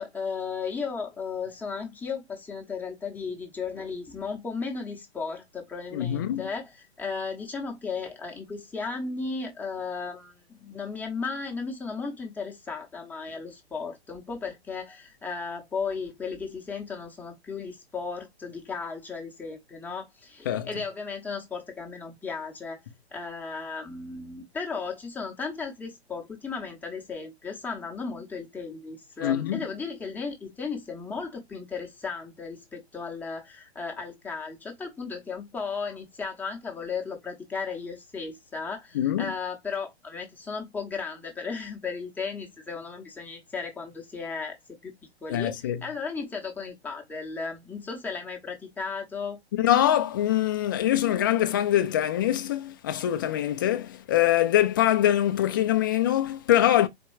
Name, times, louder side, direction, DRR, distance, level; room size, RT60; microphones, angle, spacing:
voice 1, 0.0-22.8 23.1-44.6 44.8-44.9 45.2-49.4, left 5 dB, 5° left, 0.8 m, -35 dB
voice 2, 5.9-6.4 20.5-20.7 29.2-29.6 38.9-39.3 45.3-45.8 49.6-56.9, left 12 dB, 20° left, 0.3 m, -23 dB
4.3 x 2.2 x 4.6 m
hypercardioid pair, 140°, 33 cm